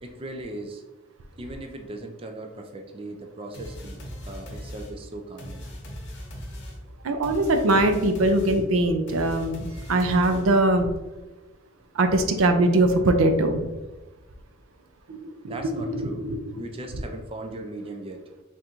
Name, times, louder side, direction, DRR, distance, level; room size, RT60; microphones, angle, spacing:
voice 1, 0.0-0.8 1.4-5.6 15.5-18.3, right 2 dB, 25° right, 3 dB, 0.4 m, -38 dB
sound 1, 3.5-10.7, equal, 55° left, 0.9 m, -39 dB
voice 2, 7.0-10.9 11.9-13.6 15.1-16.4, right 2 dB, 90° right, 7 dB, 0.5 m, -22 dB
3.6 x 2.5 x 4.3 m, 1.1 s
head